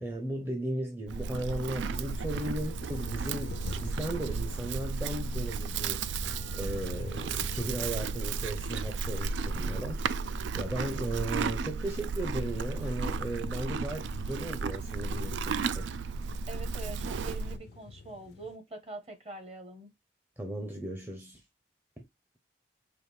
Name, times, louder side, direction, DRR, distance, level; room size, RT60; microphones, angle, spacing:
voice 1, 0.0-10.0 10.3-15.9 20.4-21.4 22.0-22.1, right 1 dB, 10° right, 0.6 m, -36 dB
sound 1, 1.1-18.6, left 4 dB, 65° left, 0.4 m, -49 dB
Livestock farm animals working animals, 1.1-17.6, right 4 dB, 85° right, 0.3 m, -34 dB
voice 2, 16.5-19.9, right 3 dB, 35° right, 1.1 m, -44 dB
5.0 x 2.6 x 3.1 m
head